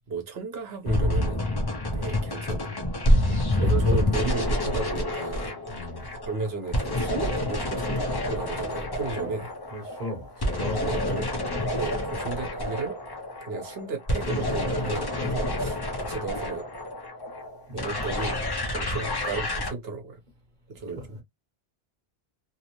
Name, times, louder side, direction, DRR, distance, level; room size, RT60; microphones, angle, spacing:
voice 1, 0.0-1.5 1.9-2.8 3.6-5.6 6.2-9.5 10.8-11.3 11.7-13.0 13.4-16.6 17.7-18.4 18.7-20.2 20.7-21.2, right 4 dB, 70° right, 1.1 m, -34 dB
sound 1, 0.9-19.7, left 1 dB, 30° left, 0.5 m, -28 dB
voice 2, 3.2-3.8 5.7-6.2 9.1-9.3 9.7-11.2 17.7-17.9 21.0-21.1, right 2 dB, 45° right, 1.1 m, -36 dB
2.8 x 2.0 x 2.9 m
omnidirectional pair, 1.1 m